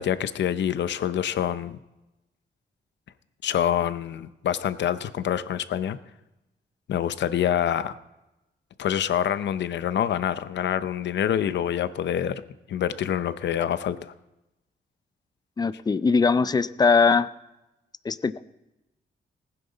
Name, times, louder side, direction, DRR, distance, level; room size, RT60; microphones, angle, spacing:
voice 1, 0.0-1.8 3.4-6.0 6.9-8.0 8.8-12.4 12.7-14.1, left 10 dB, 75° left, 13 dB, 0.7 m, -26 dB
voice 2, 15.6-17.3 18.0-18.4, left 4 dB, 20° left, 15 dB, 0.4 m, -21 dB
19.5 x 10.5 x 4.0 m, 0.97 s
wide cardioid pair, 140°, 19 cm